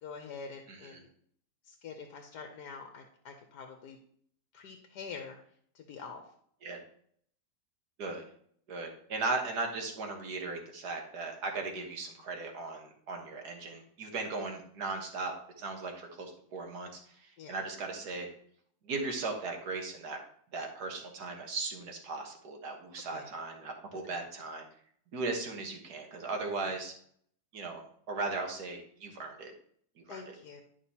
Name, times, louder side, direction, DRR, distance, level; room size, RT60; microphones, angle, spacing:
voice 1, 0.0-1.1 1.6-4.0 4.5-5.4 5.7-6.2 17.4-17.6 23.1-23.3 24.0-24.2 26.7-26.8 30.1-30.6, left 5 dB, 85° left, 4 dB, 1.4 m, -46 dB
voice 2, 0.7-1.0 6.6-6.8 8.0-8.2 8.7-18.3 18.8-20.2 20.5-24.6 25.1-26.9 27.5-27.8 28.1-29.5 30.1-30.3, right 3 dB, 75° right, 2 dB, 1.8 m, -37 dB
11.0 x 5.8 x 2.8 m, 0.62 s
omnidirectional pair, 1.7 m